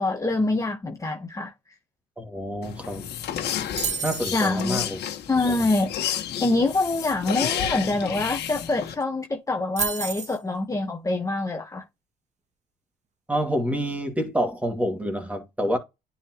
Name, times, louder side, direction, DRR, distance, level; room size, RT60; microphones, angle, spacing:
voice 1, 0.0-1.5 4.3-4.8 5.3-5.9 6.4-11.8, left 2 dB, 20° left, 1.3 m, -25 dB
voice 2, 2.2-3.1 4.0-5.0 5.4-5.7 13.3-15.8, equal, 10° right, 2.5 m, -27 dB
sound 1, 2.6-8.9, left 10 dB, 70° left, 1.6 m, -31 dB
sound 2, 3.8-4.4 8.4-8.5 8.7-9.0 9.8-10.4, right 6 dB, 40° right, 1.6 m, -29 dB
9.8 x 4.1 x 3.1 m
cardioid pair, 90°, 18 cm